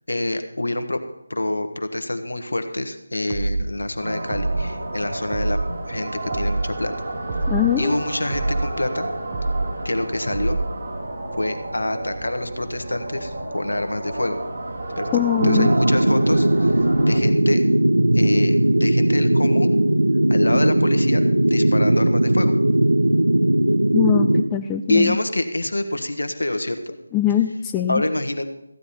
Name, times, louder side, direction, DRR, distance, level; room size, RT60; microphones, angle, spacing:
voice 1, 0.1-1.0 1.3-5.6 5.9-6.9 7.8-9.1 9.8-10.6 11.4-14.4 15.0-16.8 17.0-17.7 18.1-19.7 20.3-22.5 24.9-26.9 27.9-28.5, left 1 dB, 70° left, 8 dB, 1.4 m, -26 dB
sound 1, 3.3-3.7 4.3-4.7 5.3-5.7 6.3-6.7 7.3-7.7 8.3-8.7 9.3-9.7 10.3-10.7, right 2 dB, 25° right, 0.9 m, -25 dB
sound 2, 4.0-17.2, right 1 dB, 40° right, 1.9 m, -31 dB
voice 2, 7.5-7.9 15.1-15.7 23.9-25.1 27.1-28.0, left 11 dB, 10° left, 5 dB, 0.3 m, -22 dB
sound 3, 15.4-24.5, right 1 dB, 80° right, 0.9 m, -18 dB
14.5 x 9.6 x 4.3 m, 0.84 s
figure-of-eight pair, 160°, 0 cm